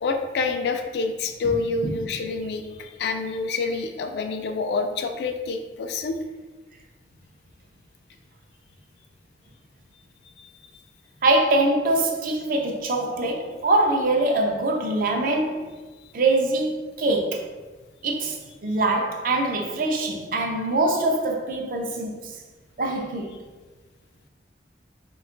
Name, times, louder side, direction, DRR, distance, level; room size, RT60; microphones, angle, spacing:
voice 1, 0.0-6.2 10.4-10.5 10.7-10.8, left 4 dB, 65° left, 6 dB, 0.3 m, -27 dB
voice 2, 11.2-15.7 16.1-17.5 18.0-22.3 22.8-23.4, right 2 dB, 50° right, 2 dB, 0.4 m, -23 dB
2.8 x 2.3 x 3.7 m, 1.3 s
head